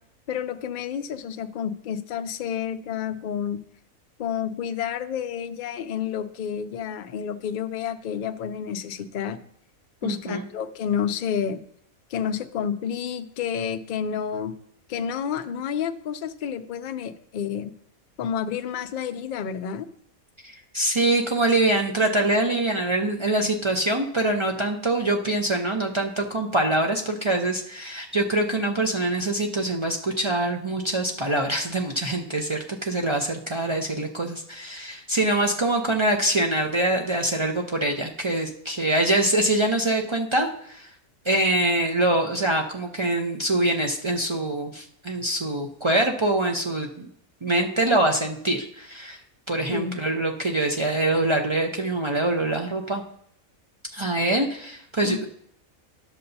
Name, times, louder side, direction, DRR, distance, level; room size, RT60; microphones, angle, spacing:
voice 1, 0.3-3.6 4.2-9.4 10.0-11.6 12.1-14.6 14.9-17.7 18.2-19.9 49.7-50.0 55.0-55.3, left 8 dB, 80° left, 8 dB, 0.4 m, -30 dB
voice 2, 10.0-10.5 20.4-40.9 41.2-47.1 47.4-49.2 49.5-53.0 53.9-55.3, right 1 dB, 50° right, 1 dB, 0.3 m, -24 dB
12.0 x 6.7 x 2.7 m, 0.67 s
omnidirectional pair, 1.5 m